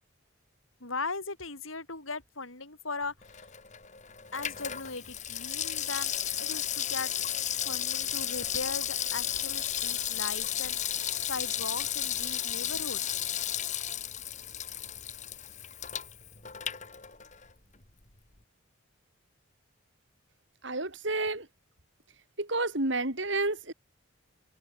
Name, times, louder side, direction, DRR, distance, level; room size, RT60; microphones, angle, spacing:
voice 1, 0.8-3.4 4.3-6.1 6.4-7.1 7.6-10.8 11.2-13.2, left 3 dB, 75° left, 7.1 m, -38 dB
Water tap faucet / Sink (filling or washing), 3.2-17.5 17.8-17.9, left 10 dB, 35° left, 2.8 m, -34 dB
voice 2, 20.6-21.5 22.4-23.7, right 2 dB, 60° right, 3.6 m, -30 dB
head